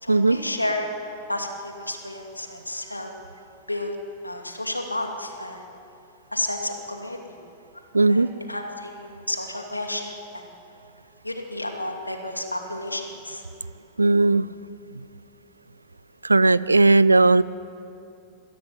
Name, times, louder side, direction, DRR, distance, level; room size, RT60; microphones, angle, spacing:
voice 1, 0.0-0.9 1.3-3.1 3.7-4.0 4.2-5.6 6.3-7.4 8.0-10.5 11.2-13.4, left 1 dB, 85° left, 4 dB, 2.5 m, -31 dB
voice 2, 7.9-8.3 14.0-14.5 16.2-17.4, right 3 dB, 80° right, 18 dB, 0.5 m, -17 dB
22.0 x 15.5 x 9.7 m, 2.6 s
figure-of-eight pair, 90°, 0 cm